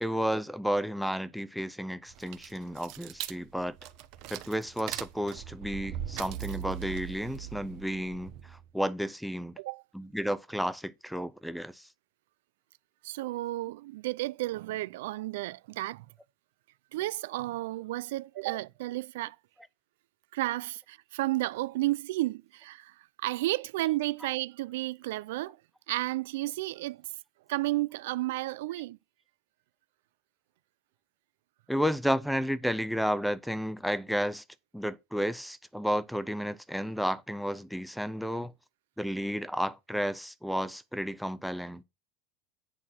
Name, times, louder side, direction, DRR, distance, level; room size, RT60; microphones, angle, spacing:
voice 1, 0.0-3.7 4.3-9.5 9.9-11.8 31.7-34.4 34.7-38.5 39.0-41.8, equal, ahead, 0.4 m, -32 dB
sound 1, 2.1-8.6, right 12 dB, 45° right, 0.8 m, -40 dB
voice 2, 13.0-16.1 16.9-19.4 20.3-22.9 23.2-25.6 25.9-27.0 27.5-29.0, right 17 dB, 85° right, 0.4 m, -32 dB
8.6 x 4.2 x 5.8 m
supercardioid pair, 170°, 0 cm